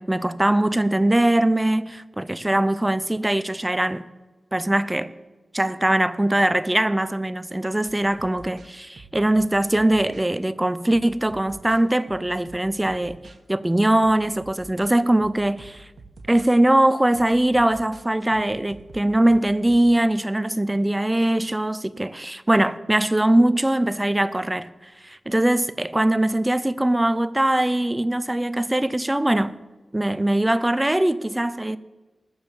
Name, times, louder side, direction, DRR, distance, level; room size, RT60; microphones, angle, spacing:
voice 1, 0.0-4.0 4.5-5.1 5.5-13.2 13.5-15.9 16.3-29.6 29.9-31.8, right 1 dB, 10° right, 0.4 m, -21 dB
sound 1, 7.9-10.3 10.9-13.4 13.8-16.5 17.1-19.9, right 3 dB, 85° right, 1.2 m, -47 dB
19.5 x 7.1 x 7.2 m
wide cardioid pair, 135°, 0 cm